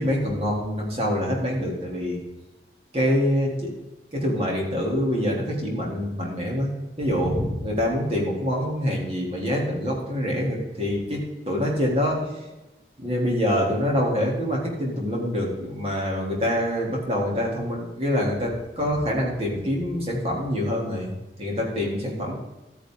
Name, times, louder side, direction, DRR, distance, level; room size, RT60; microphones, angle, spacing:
voice 1, 0.0-2.2 2.9-3.7 4.1-6.7 7.0-12.3 13.0-21.1 21.4-22.3, equal, 35° right, -2 dB, 3.1 m, -25 dB
13.0 x 9.6 x 3.9 m, 1.1 s
head